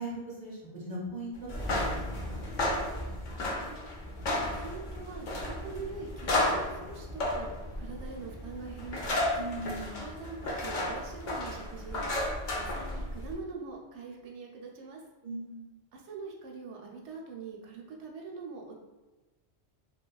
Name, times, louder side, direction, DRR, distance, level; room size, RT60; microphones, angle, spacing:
voice 1, 0.0-1.3 1.7-2.4 9.4-10.0 15.2-15.8, right 2 dB, 50° right, -6 dB, 0.6 m, -39 dB
sound 1, 1.4-13.3, left 1 dB, 55° left, 0.6 m, -33 dB
voice 2, 3.4-4.1 4.4-7.5 7.8-9.2 9.9-15.0 15.9-18.7, right 4 dB, 85° right, 0 dB, 0.9 m, -44 dB
2.8 x 2.2 x 2.3 m, 1.2 s
omnidirectional pair, 1.1 m